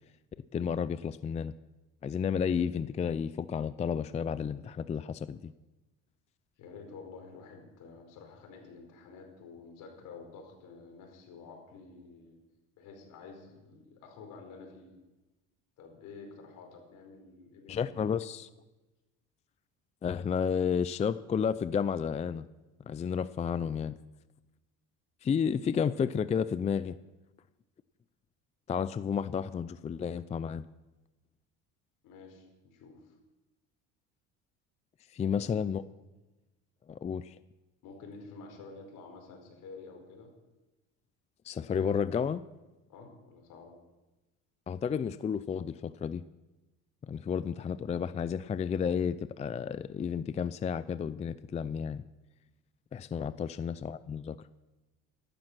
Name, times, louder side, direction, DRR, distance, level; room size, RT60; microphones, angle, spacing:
voice 1, 0.5-1.5 2.0-5.5 17.7-18.5 20.0-22.5 22.9-24.0 25.2-27.0 28.7-30.6 35.1-35.8 36.9-37.4 41.4-42.4 44.7-46.2 47.0-52.0 52.9-54.4, left 7 dB, 20° left, 15 dB, 0.4 m, -31 dB
voice 2, 6.6-12.4 12.8-14.9 15.8-18.2 32.0-33.1 35.2-35.6 37.8-40.3 42.9-43.8 53.2-53.4, left 4 dB, 70° left, 3 dB, 4.7 m, -50 dB
14.0 x 12.0 x 6.1 m, 1.1 s
cardioid pair, 110°, 33 cm